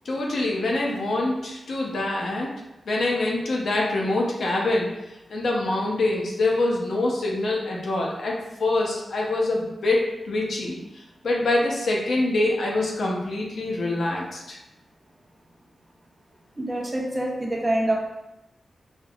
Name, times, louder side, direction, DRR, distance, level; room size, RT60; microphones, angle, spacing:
voice 1, 0.0-2.5 2.9-4.9 5.3-10.8 11.2-14.6, left 2 dB, 75° left, -2 dB, 0.8 m, -25 dB
voice 2, 16.6-18.0, right 1 dB, 20° right, -2 dB, 0.8 m, -25 dB
5.3 x 2.9 x 2.4 m, 0.93 s
wide cardioid pair, 135°, 0 cm